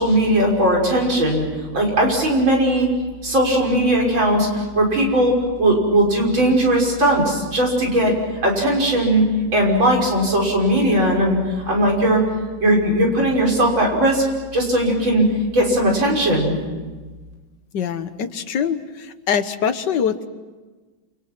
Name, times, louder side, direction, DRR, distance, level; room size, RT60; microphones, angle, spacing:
voice 1, 0.0-1.5 1.7-2.9 3.2-5.3 5.6-8.2 8.4-9.3 9.5-11.4 11.7-12.2 12.6-14.2 14.5-15.3 15.5-16.6, right 1 dB, 75° right, -1 dB, 6.6 m, -18 dB
voice 2, 17.7-20.3, left 7 dB, 65° left, 10 dB, 1.8 m, -23 dB
29.0 x 28.5 x 6.1 m, 1.3 s
omnidirectional pair, 2.1 m